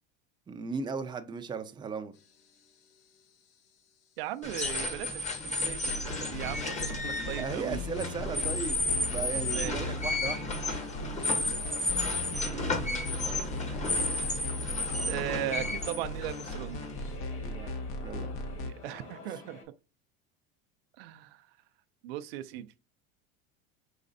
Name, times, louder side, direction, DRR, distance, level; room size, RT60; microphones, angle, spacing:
voice 1, 0.5-2.1 7.2-10.5 17.4-17.7 18.0-18.4, right 5 dB, 15° right, 0.5 m, -37 dB
voice 2, 4.2-7.8 9.5-9.9 12.3-13.0 13.7-13.8 14.7-16.9 18.6-19.6 21.0-21.5 22.0-22.7, right 13 dB, 80° right, 0.5 m, -38 dB
sound 1, 4.4-17.1, left 2 dB, 25° left, 1.0 m, -33 dB
sound 2, 5.9-18.7, left 1 dB, 60° left, 0.9 m, -38 dB
sound 3, 7.5-19.6, left 3 dB, 45° left, 1.7 m, -50 dB
5.1 x 3.2 x 2.6 m
supercardioid pair, 100°, 30 cm